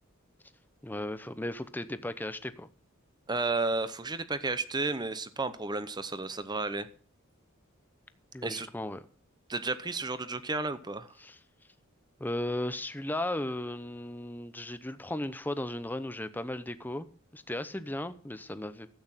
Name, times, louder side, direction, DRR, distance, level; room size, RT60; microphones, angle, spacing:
voice 1, 0.8-2.7 8.3-9.1 11.2-11.4 12.2-17.1 17.3-18.9, left 1 dB, 10° left, 0.7 m, -36 dB
voice 2, 3.3-6.9 8.4-8.7 9.5-11.1, right 3 dB, 20° right, 0.8 m, -32 dB
12.5 x 8.7 x 5.8 m
head